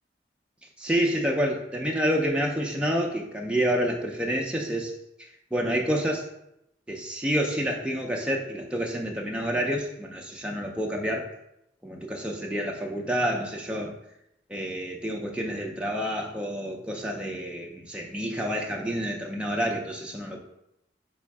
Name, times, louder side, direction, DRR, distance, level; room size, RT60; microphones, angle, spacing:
voice 1, 0.8-4.9 5.5-6.3 6.9-11.2 11.8-14.0 14.5-20.4, equal, 5° right, 0 dB, 0.5 m, -28 dB
3.4 x 3.1 x 4.6 m, 0.81 s
head